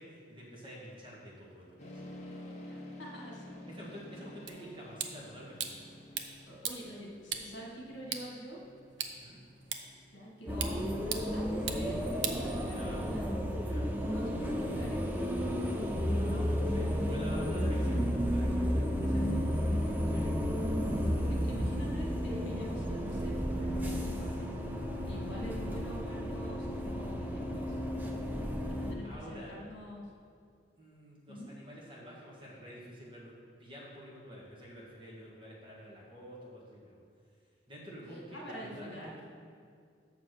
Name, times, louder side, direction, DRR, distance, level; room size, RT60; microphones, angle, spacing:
voice 1, 0.0-2.0 3.7-5.8 9.2-9.4 12.6-13.0 13.5-13.9 15.9-18.9 20.1-20.4 28.8-29.5 30.7-33.3 33.6-37.0 37.7-39.1, equal, 25° right, -5 dB, 1.6 m, -48 dB
sound 1, 1.8-17.3, left 1 dB, 35° left, 1.1 m, -53 dB
voice 2, 2.7-3.9 6.5-8.6 10.1-12.0 12.2-13.3 14.0-15.1 19.0-19.5 21.2-24.5 25.0-27.8 28.7-30.1 31.3-31.5 38.3-39.2, equal, 75° left, -2 dB, 1.6 m, -45 dB
sound 2, 4.5-13.1, right 8 dB, 70° right, 0.6 m, -42 dB
sound 3, 10.5-28.9, equal, 10° right, 0.5 m, -32 dB
6.9 x 4.7 x 6.6 m, 2.2 s
head